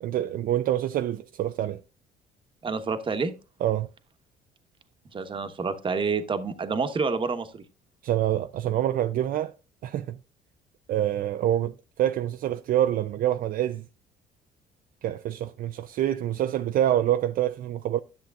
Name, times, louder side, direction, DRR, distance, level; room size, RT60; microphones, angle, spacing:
voice 1, 0.0-1.8 3.6-3.9 8.0-9.5 9.8-10.2 10.9-13.8 15.0-18.0, right 12 dB, 55° right, 0.5 m, -26 dB
voice 2, 2.6-3.3 5.1-7.6, right 4 dB, 30° right, 1.1 m, -28 dB
10.5 x 7.8 x 2.4 m
cardioid pair, 110°, 17 cm